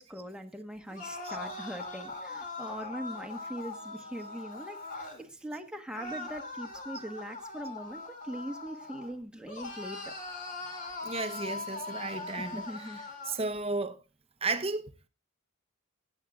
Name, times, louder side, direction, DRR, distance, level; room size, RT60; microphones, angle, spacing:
voice 1, 0.0-10.1 12.4-13.0, equal, 5° right, 1.3 m, -41 dB
sound 1, 0.9-5.2 5.9-9.1 9.5-13.4, left 3 dB, 40° left, 3.1 m, -41 dB
voice 2, 11.0-14.0 14.4-14.9, right 3 dB, 30° right, 1.0 m, -34 dB
16.0 x 10.0 x 2.4 m
head